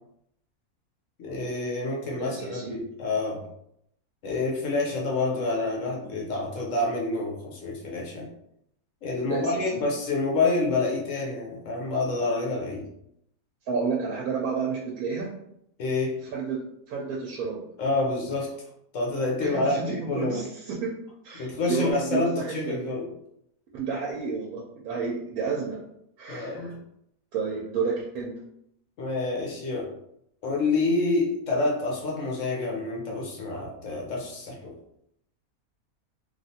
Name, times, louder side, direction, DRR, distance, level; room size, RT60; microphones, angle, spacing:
voice 1, 1.2-3.4 4.2-8.3 9.0-12.8 15.8-16.2 17.8-18.5 18.9-19.8 20.1-20.4 21.3-23.1 26.3-26.8 29.0-29.9 30.4-34.8, left 3 dB, 60° left, -1 dB, 1.0 m, -28 dB
voice 2, 2.2-2.7 9.2-9.6 13.7-15.3 16.2-16.6 16.9-17.6 19.4-20.9 21.2-22.8 23.7-25.8 26.2-26.7 27.3-28.3, right 5 dB, 80° right, -2 dB, 1.1 m, -31 dB
3.1 x 2.4 x 2.7 m, 0.75 s
omnidirectional pair, 1.6 m